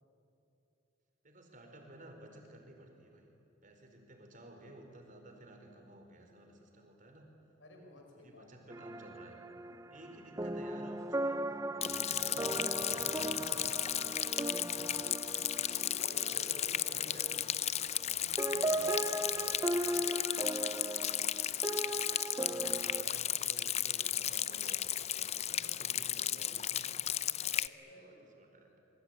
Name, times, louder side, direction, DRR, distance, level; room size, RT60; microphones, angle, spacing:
voice 1, 1.2-3.3 3.6-7.3 8.1-9.4 9.9-14.2 14.7-15.2 16.1-17.3 17.6-17.7 19.3-19.4 22.0-27.2 27.9-28.7, right 1 dB, 45° right, 3 dB, 4.9 m, -54 dB
voice 2, 7.6-8.7 14.3-14.7 15.5-17.3 18.1-20.9 25.5-26.0 27.3-28.3, left 1 dB, 80° left, 2 dB, 5.0 m, -55 dB
sound 1, 8.7-18.1 18.4-23.0, right 1 dB, 15° right, 0.6 m, -38 dB
Rain, 11.8-27.7, left 11 dB, 35° left, 0.6 m, -34 dB
26.5 x 23.5 x 9.6 m, 2.8 s
head